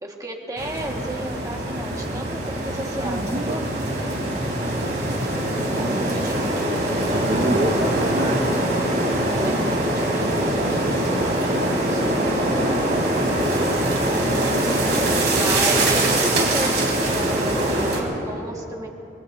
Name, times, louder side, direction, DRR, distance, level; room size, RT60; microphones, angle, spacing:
voice 1, 0.0-3.3 6.0-6.8 9.3-12.2 14.3-14.6 15.3-18.9, right 1 dB, 20° right, 0 dB, 1.6 m, -32 dB
sound 1, 0.6-18.0, right 1 dB, 80° right, 3.7 m, -23 dB
voice 2, 3.0-3.7 5.7-6.1 6.9-8.5, right 1 dB, 40° right, -1 dB, 1.0 m, -27 dB
24.0 x 22.5 x 2.7 m, 2.7 s
head